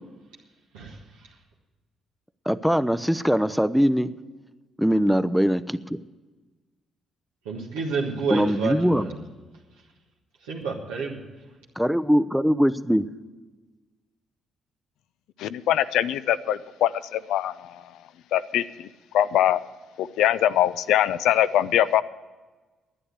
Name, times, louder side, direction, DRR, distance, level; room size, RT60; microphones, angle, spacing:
voice 1, 0.7-1.3 7.4-9.2 10.4-11.2, right 4 dB, 85° right, -3 dB, 1.5 m, -30 dB
voice 2, 2.5-4.1 4.8-6.0 8.3-9.1 11.8-13.1, equal, ahead, 15 dB, 0.6 m, -22 dB
voice 3, 15.4-17.8 18.3-18.9 19.1-19.6 20.0-22.0, left 11 dB, 75° left, 14 dB, 0.4 m, -23 dB
11.0 x 9.8 x 8.0 m, 1.3 s
hypercardioid pair, 50°, 0 cm